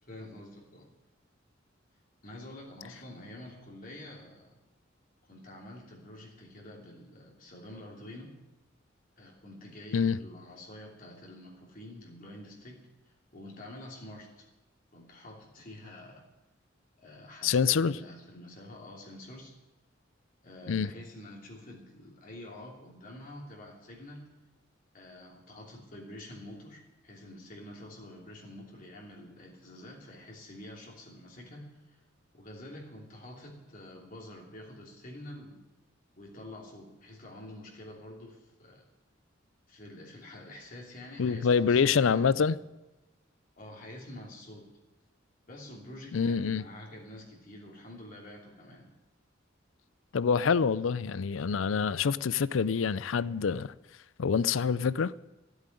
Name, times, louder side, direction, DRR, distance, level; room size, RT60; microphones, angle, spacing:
voice 1, 0.0-0.9 2.2-4.5 5.3-8.3 9.2-12.8 13.3-14.5 14.9-16.3 17.0-19.5 20.4-24.3 24.9-32.0 32.3-35.6 36.2-38.8 39.7-42.5 43.6-44.7 45.5-48.9, left 1 dB, 45° left, 3.0 m, -47 dB
voice 2, 17.4-18.0 20.7-20.9 41.2-42.6 46.1-46.6 50.1-53.7 54.2-55.1, left 6 dB, 90° left, 0.5 m, -26 dB
14.5 x 8.1 x 9.9 m
head